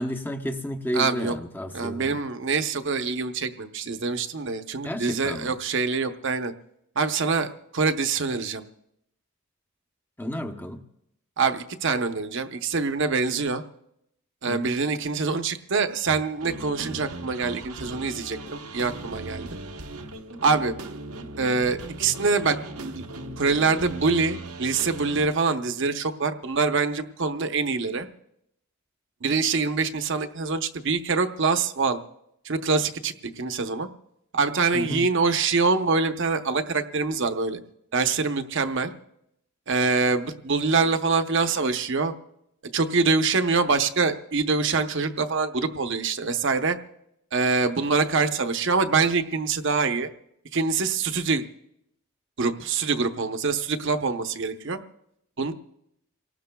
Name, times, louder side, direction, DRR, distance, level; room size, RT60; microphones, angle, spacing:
voice 1, 0.0-2.2 4.8-5.5 10.2-10.8 14.5-14.7 34.7-35.1, equal, 10° left, 4 dB, 0.8 m, -31 dB
voice 2, 0.9-1.3 1.7-6.5 7.0-8.7 11.4-13.6 14.4-19.5 20.4-20.7 21.4-23.1 23.4-28.1 29.2-32.0 32.4-33.9 34.3-37.6 37.9-38.9 39.7-42.1 42.7-46.8 47.3-50.1 50.5-51.4 52.4-54.8 55.4-55.5, right 4 dB, 60° right, 8 dB, 0.8 m, -25 dB
sound 1, 16.1-25.3, right 2 dB, 90° right, 1.1 m, -38 dB
28.0 x 18.5 x 2.3 m, 0.80 s
head